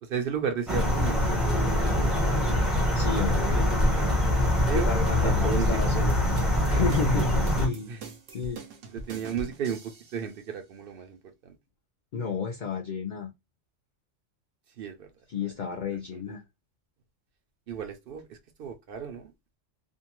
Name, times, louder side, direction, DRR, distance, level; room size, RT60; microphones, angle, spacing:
voice 1, 0.0-2.5 4.7-4.9 5.2-5.8 7.9-8.1 8.9-11.5 14.8-15.1 15.7-16.4 17.7-19.3, right 7 dB, 60° right, 0.7 m, -35 dB
sound 1, 0.7-7.7, left 1 dB, ahead, 0.6 m, -24 dB
voice 2, 2.9-3.7 4.7-6.1 6.7-7.9 8.3-8.6 12.1-13.3 15.3-16.4, left 4 dB, 60° left, 0.5 m, -31 dB
sound 2, 6.1-10.2, right 2 dB, 85° right, 1.0 m, -42 dB
2.6 x 2.1 x 2.9 m
omnidirectional pair, 1.3 m